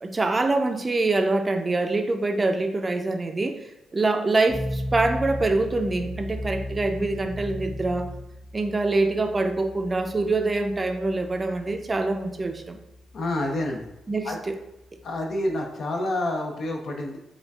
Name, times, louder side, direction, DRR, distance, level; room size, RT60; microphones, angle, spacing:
voice 1, 0.0-3.7 3.9-8.1 8.5-12.8 14.1-14.5, right 2 dB, 30° right, 6 dB, 0.4 m, -25 dB
sound 1, 4.5-15.6, left 1 dB, 45° left, 1.1 m, -37 dB
voice 2, 13.1-13.9 14.2-14.4 15.0-17.2, left 1 dB, 70° left, 1 dB, 0.6 m, -28 dB
5.0 x 2.3 x 2.3 m, 0.90 s
cardioid pair, 75°, 0 cm